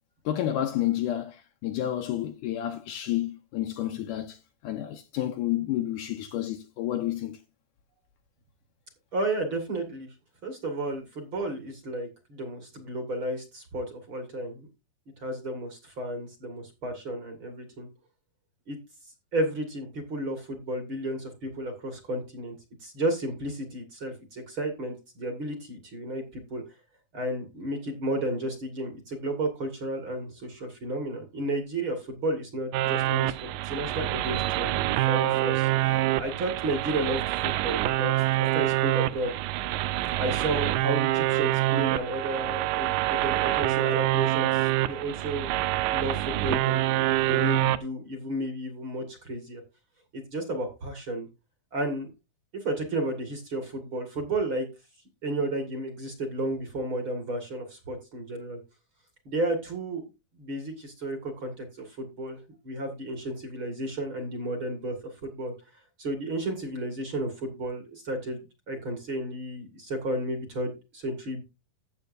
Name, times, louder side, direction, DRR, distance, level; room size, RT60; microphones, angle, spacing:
voice 1, 0.3-7.4, left 12 dB, 75° left, 2.0 m, -30 dB
voice 2, 9.1-10.1 10.4-14.7 15.2-17.9 18.7-18.8 19.3-22.6 22.8-26.6 27.1-38.1 38.4-39.3 40.2-49.6 50.1-51.3 51.7-52.1 52.5-54.7 55.2-58.6 59.3-60.0 60.4-61.7 62.0-65.0 65.2-65.5 66.0-71.4, right 1 dB, 40° right, 2.1 m, -32 dB
sound 1, 32.7-47.8, right 15 dB, 80° right, 2.1 m, -26 dB
13.5 x 8.0 x 2.6 m
omnidirectional pair, 4.2 m